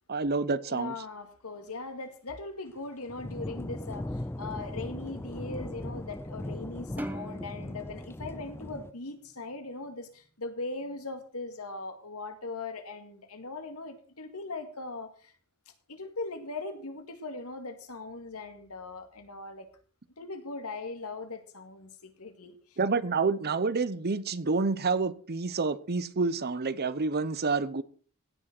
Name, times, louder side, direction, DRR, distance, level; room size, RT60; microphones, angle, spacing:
voice 1, 0.1-0.9 22.8-27.8, right 4 dB, 45° right, 0.9 m, -28 dB
voice 2, 0.7-15.3 15.9-19.7 20.2-22.8, left 3 dB, 75° left, 2.1 m, -40 dB
sound 1, 3.1-8.9, left 1 dB, 10° left, 0.5 m, -38 dB
sound 2, 7.0-9.5, right 1 dB, 10° right, 1.1 m, -42 dB
17.0 x 6.3 x 6.1 m
head